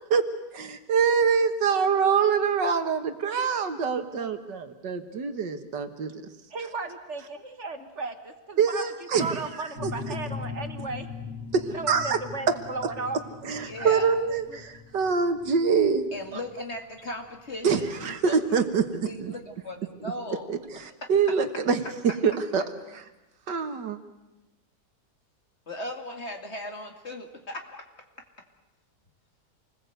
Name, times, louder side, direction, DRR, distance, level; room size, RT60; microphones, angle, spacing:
voice 1, 0.5-6.1 8.6-9.4 11.9-12.2 12.5-12.6 13.4-16.1 17.6-19.3 20.5-20.6 21.1-21.8 22.2-22.6 22.9-23.0 23.5-24.0, right 6 dB, 80° right, 8 dB, 2.1 m, -25 dB
voice 2, 6.5-8.9 9.2-11.1 11.6-13.2 13.7-14.1 14.5-14.6, right 3 dB, 40° right, 7 dB, 1.8 m, -35 dB
sound 1, 9.8-19.2, left 5 dB, 65° left, 5.1 m, -41 dB
voice 3, 13.6-14.1 16.1-18.6 19.0-20.5 21.0-21.1 25.7-27.9 28.2-28.3, left 1 dB, 40° left, 3 dB, 2.5 m, -38 dB
28.0 x 20.5 x 8.1 m, 1.1 s
omnidirectional pair, 1.9 m